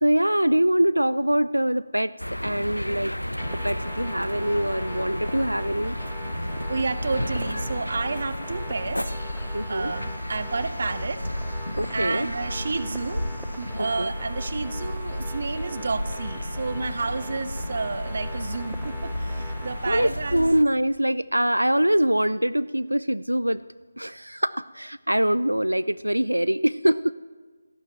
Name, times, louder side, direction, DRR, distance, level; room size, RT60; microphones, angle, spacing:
voice 1, 0.0-2.1 2.4-3.2 3.5-6.0 9.5-9.9 11.8-12.3 13.8-14.1 19.9-23.6 24.0-27.1, right 1 dB, 85° right, 16 dB, 0.4 m, -23 dB
sound 1, 2.2-20.6, equal, 85° left, 0.7 m, -32 dB
sound 2, 3.4-20.1, equal, ahead, 0.5 m, -45 dB
voice 2, 6.7-9.1 9.7-11.2 11.9-13.2 13.6-20.5, right 4 dB, 45° right, 12 dB, 1.1 m, -30 dB
15.5 x 11.5 x 7.3 m, 1.4 s
figure-of-eight pair, 155°, 0 cm